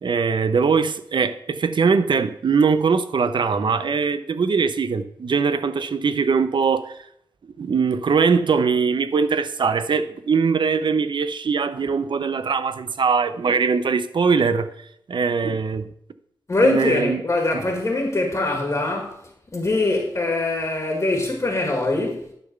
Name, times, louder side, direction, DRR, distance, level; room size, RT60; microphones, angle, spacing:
voice 1, 0.0-7.0 7.6-14.7 15.1-15.9 16.6-17.2, right 5 dB, 65° right, 0.6 m, -21 dB
voice 2, 16.5-19.2 19.5-22.3, left 2 dB, 35° left, 1.7 m, -22 dB
10.5 x 4.0 x 6.6 m
wide cardioid pair, 105°, 9 cm